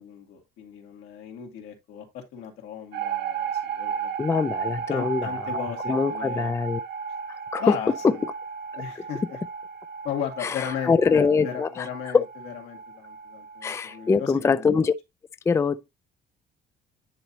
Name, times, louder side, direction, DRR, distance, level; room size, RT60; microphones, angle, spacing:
voice 1, 0.0-4.1 4.9-6.6 7.6-8.2 8.8-9.4 10.0-14.9, left 8 dB, 90° left, 2.5 m, -36 dB
sound 1, 2.9-14.1, right 6 dB, 75° right, 0.8 m, -34 dB
voice 2, 4.2-5.3 5.5-6.8 7.5-7.6 8.0-8.1 8.7-8.8 10.4-11.9 12.1-12.3 13.6-14.9 15.5-15.9, left 5 dB, 15° left, 0.4 m, -23 dB
10.0 x 4.1 x 2.8 m
cardioid pair, 110°, 17 cm